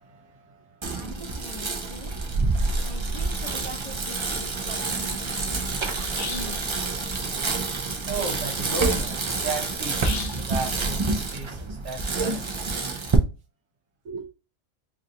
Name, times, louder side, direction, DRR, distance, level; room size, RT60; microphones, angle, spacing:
voice 1, 0.0-1.0 2.5-2.9 8.1-12.5 14.0-14.3, right 4 dB, 65° right, 1.2 m, -35 dB
Bicycle, 0.8-13.2, right 3 dB, 50° right, 0.3 m, -28 dB
voice 2, 0.9-2.2 2.8-6.7, left 1 dB, 25° left, 0.9 m, -42 dB
sound 1, 6.2-6.6 10.0-10.5, left 6 dB, 60° left, 0.6 m, -35 dB
4.8 x 2.5 x 2.8 m
omnidirectional pair, 1.4 m